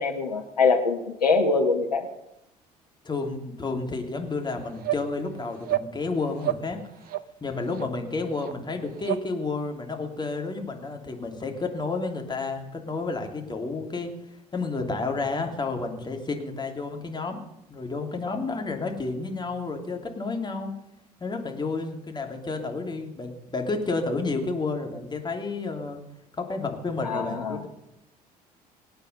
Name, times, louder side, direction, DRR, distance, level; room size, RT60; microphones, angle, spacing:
voice 1, 0.0-2.1 27.0-27.6, left 4 dB, 80° left, 5 dB, 1.5 m, -24 dB
voice 2, 3.0-6.8 7.4-14.1 14.5-17.4 17.7-20.7 21.2-26.0 26.4-27.7, left 3 dB, 20° left, 3 dB, 2.9 m, -31 dB
sound 1, 4.2-4.3 4.8-5.0 5.6-5.9 6.4-6.7 7.0-7.3 7.7-7.9 8.4-8.5 9.0-9.2, right 14 dB, 50° right, 0.6 m, -29 dB
24.0 x 8.9 x 5.4 m, 0.86 s
figure-of-eight pair, 55°, 20 cm